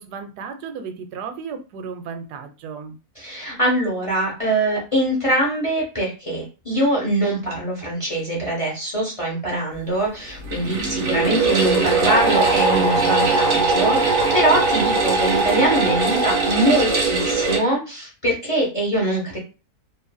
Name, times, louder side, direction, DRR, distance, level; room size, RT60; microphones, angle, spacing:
voice 1, 0.0-3.0, right 6 dB, 90° right, 8 dB, 1.1 m, -34 dB
voice 2, 3.2-19.4, right 1 dB, 25° left, -4 dB, 0.8 m, -23 dB
sound 1, 10.4-17.6, right 3 dB, 50° right, 1.1 m, -20 dB
2.8 x 2.5 x 2.3 m, 0.32 s
omnidirectional pair, 1.7 m